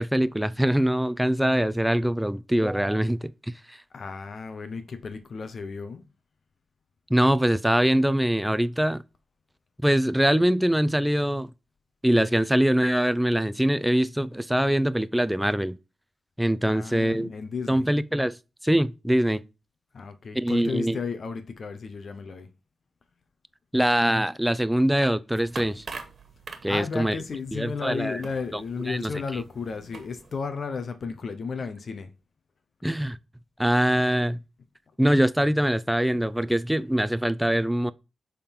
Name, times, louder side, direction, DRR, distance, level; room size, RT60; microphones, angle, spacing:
voice 1, 0.0-3.8 7.1-9.0 9.8-11.5 12.0-15.8 16.4-17.3 17.7-18.4 18.6-19.4 20.3-21.0 23.7-25.9 26.6-27.2 27.5-28.2 28.5-29.4 32.8-33.2 33.6-34.4 35.0-37.9, right 1 dB, 5° right, 0.4 m, -23 dB
voice 2, 3.9-6.0 16.7-17.9 19.9-22.5 26.7-32.1 36.1-36.3, left 5 dB, 65° left, 0.8 m, -34 dB
sound 1, 25.3-30.4, right 4 dB, 60° right, 1.5 m, -44 dB
6.7 x 3.8 x 5.4 m
cardioid pair, 60°, 0 cm